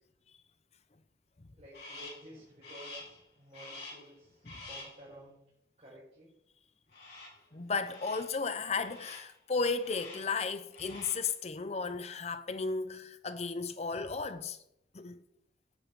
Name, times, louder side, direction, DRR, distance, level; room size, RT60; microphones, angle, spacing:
voice 1, 1.5-5.4 5.8-6.3, right 1 dB, 35° right, 4.7 m, -53 dB
Crow, 1.7-2.3 2.6-3.2 3.5-4.1 4.4-5.0 6.9-7.4 7.8-8.3 8.8-9.3 9.8-10.3 10.7-11.3, left 2 dB, 65° left, 5.1 m, -48 dB
voice 2, 7.5-14.6 14.9-15.2, left 4 dB, 35° left, 0.6 m, -34 dB
10.5 x 8.3 x 6.1 m
head